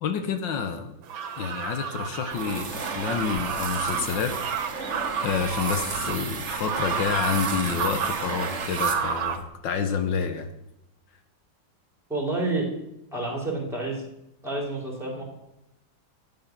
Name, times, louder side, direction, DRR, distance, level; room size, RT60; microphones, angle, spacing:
voice 1, 0.0-0.9 1.4-4.4 4.8-10.5, left 6 dB, 75° left, 7 dB, 1.6 m, -29 dB
sound 1, 1.0-9.4, right 7 dB, 85° right, 1.9 m, -31 dB
sound 2, 2.3-9.4, right 4 dB, 40° right, 1.5 m, -34 dB
voice 2, 12.1-12.7 13.1-14.0 14.4-15.2, right 2 dB, ahead, 0 dB, 3.4 m, -29 dB
12.5 x 9.2 x 6.0 m, 0.86 s
omnidirectional pair, 2.1 m